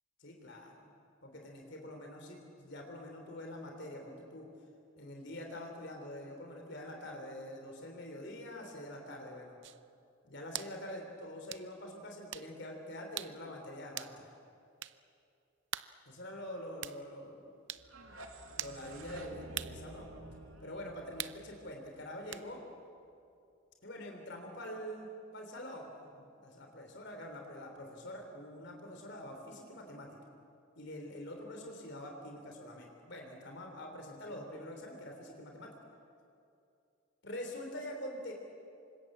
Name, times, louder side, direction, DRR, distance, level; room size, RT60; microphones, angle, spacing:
voice 1, 0.2-0.9 1.2-4.5 5.0-9.6 10.2-14.3 16.1-17.5 18.6-20.1 20.6-22.6 23.8-30.1 30.8-35.7 37.2-38.3, left 1 dB, 60° left, 2 dB, 3.5 m, -45 dB
sound 1, 9.6-9.8 10.5-10.8 11.5-11.6 12.3-12.5 13.2-13.4 14.0-14.2 14.8-15.0 15.7-15.9 16.8-17.0 17.7-17.9 18.6-18.8 19.5-19.8 21.2-21.4 22.3-22.5, right 12 dB, 60° right, 0.7 m, -41 dB
sound 2, 17.8-22.7, right 2 dB, 85° right, 2.4 m, -50 dB
28.0 x 25.0 x 7.6 m, 2.6 s
head